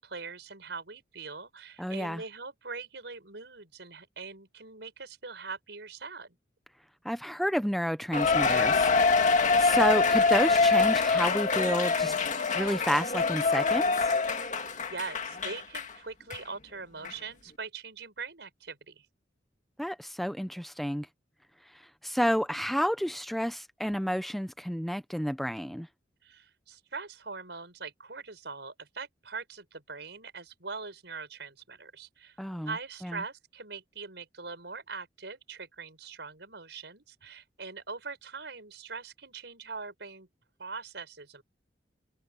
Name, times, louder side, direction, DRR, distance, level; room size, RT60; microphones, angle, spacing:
voice 1, 0.0-6.4 14.4-14.5 14.8-19.1 26.2-32.4 32.6-40.3 40.6-41.4, right 4 dB, 70° right, 6.6 m, -42 dB
voice 2, 1.8-2.2 7.0-12.1 12.5-14.1 19.8-21.1 22.0-25.9 32.4-32.7 33.0-33.2, equal, ahead, 0.7 m, -30 dB
Cheering, 8.1-15.9 16.3-16.4 17.0-17.1, left 4 dB, 45° left, 2.0 m, -25 dB
head